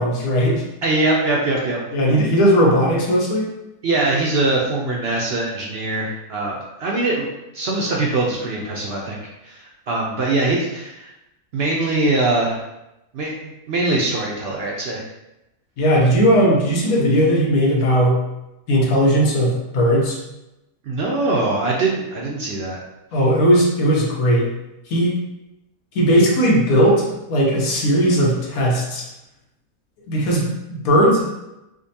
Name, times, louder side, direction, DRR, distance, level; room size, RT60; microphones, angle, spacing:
voice 1, 0.0-0.7 1.9-3.5 15.8-18.2 18.7-20.2 23.1-24.5 24.9-25.2 25.9-29.0 30.1-31.2, equal, 85° left, -2 dB, 1.3 m, -17 dB
voice 2, 0.8-1.8 3.8-7.3 7.5-9.2 9.4-11.1 11.5-12.6 13.1-15.0 20.9-22.8, right 2 dB, 60° right, -3 dB, 0.7 m, -22 dB
5.0 x 2.2 x 2.7 m, 0.92 s
omnidirectional pair, 1.5 m